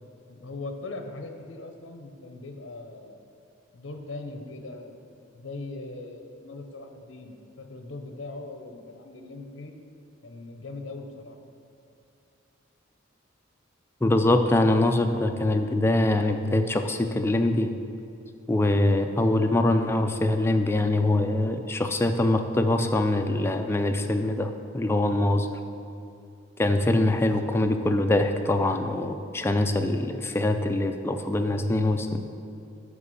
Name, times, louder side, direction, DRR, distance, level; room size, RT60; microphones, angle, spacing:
voice 1, 0.3-3.2 3.7-5.0 5.3-9.7 10.2-11.4, left 2 dB, 70° left, 5 dB, 0.7 m, -40 dB
voice 2, 14.0-17.7 18.5-25.5 26.6-32.2, left 1 dB, 10° left, 5 dB, 0.3 m, -23 dB
6.7 x 5.0 x 5.3 m, 2.6 s
head